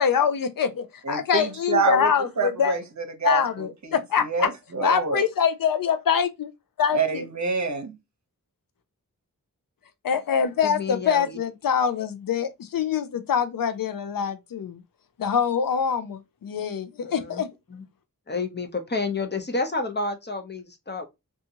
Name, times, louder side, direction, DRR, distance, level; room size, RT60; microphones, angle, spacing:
voice 1, 0.0-2.7 3.2-4.5 4.8-6.5 6.8-7.3 10.0-14.8 15.2-17.5, left 7 dB, 70° left, 0.5 m, -24 dB
voice 2, 1.0-2.1 2.4-5.3 6.9-8.0, right 4 dB, 55° right, 0.8 m, -27 dB
voice 3, 10.6-11.4 17.0-17.4 17.7-17.8 18.3-21.1, left 3 dB, 30° left, 0.7 m, -30 dB
2.7 x 2.4 x 2.7 m
wide cardioid pair, 50°, 35 cm